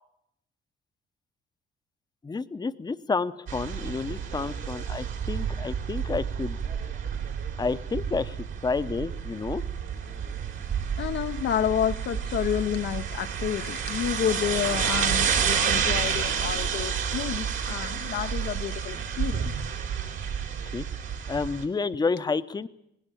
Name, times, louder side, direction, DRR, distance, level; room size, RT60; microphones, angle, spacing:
voice 1, 2.2-6.6 7.6-8.4 8.6-9.6 20.7-20.8 21.3-22.7, left 4 dB, 20° left, 0.7 m, -30 dB
sound 1, 3.5-21.7, right 7 dB, 75° right, 3.5 m, -30 dB
voice 2, 11.0-19.5, left 10 dB, 70° left, 0.7 m, -30 dB
19.5 x 17.0 x 9.1 m
cardioid pair, 90°, 20 cm